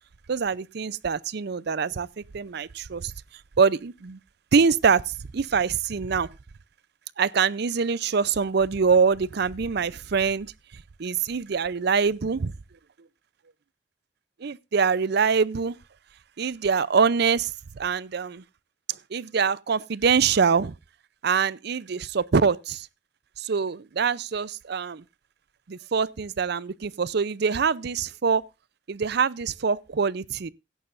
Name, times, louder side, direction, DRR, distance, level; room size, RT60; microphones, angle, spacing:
voice 1, 0.3-2.1 2.3-3.1 3.6-4.2 4.5-6.3 7.2-10.5 11.0-12.5 14.4-15.8 16.4-18.4 19.1-20.7 21.2-22.9 23.4-25.0 25.7-28.4 28.9-30.5, right 5 dB, 65° right, 0.5 m, -24 dB
16.5 x 11.0 x 2.5 m
head